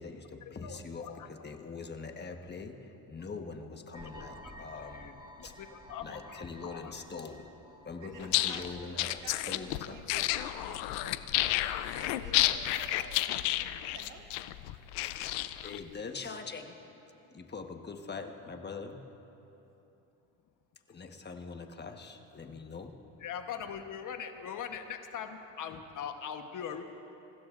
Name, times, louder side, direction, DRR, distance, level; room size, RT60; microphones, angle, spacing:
voice 1, 0.0-5.6 6.0-7.5 7.8-9.2 9.5-10.0 13.0-13.1 15.2-16.8 17.3-19.0 20.9-23.0, left 4 dB, 25° left, 4 dB, 1.3 m, -43 dB
voice 2, 0.6-1.3 4.2-5.1 5.4-6.9 23.2-26.8, left 8 dB, 50° left, 6 dB, 1.2 m, -42 dB
sound 1, 3.9-10.6, equal, 10° right, 1.6 m, -53 dB
voice 3, 8.0-11.6 11.9-13.3 13.7-14.2, right 3 dB, 50° right, 3 dB, 1.7 m, -50 dB
sound 2, 8.2-15.8, left 15 dB, 80° left, 0.6 m, -31 dB
27.5 x 16.0 x 2.6 m, 3.0 s
supercardioid pair, 95°, 41 cm